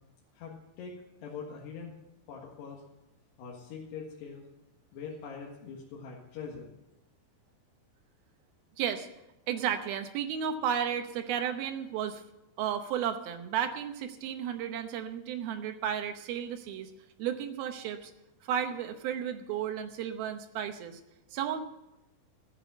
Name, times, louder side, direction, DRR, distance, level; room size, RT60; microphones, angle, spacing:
voice 1, 0.3-2.0 2.3-2.8 3.4-4.5 4.9-6.7, left 5 dB, 75° left, -3 dB, 3.8 m, -43 dB
voice 2, 8.8-9.1 9.5-12.2 12.6-16.9 17.2-18.1 18.4-21.0 21.3-21.6, right 9 dB, 70° right, 7 dB, 2.6 m, -33 dB
13.5 x 8.8 x 8.2 m, 0.91 s
omnidirectional pair, 4.9 m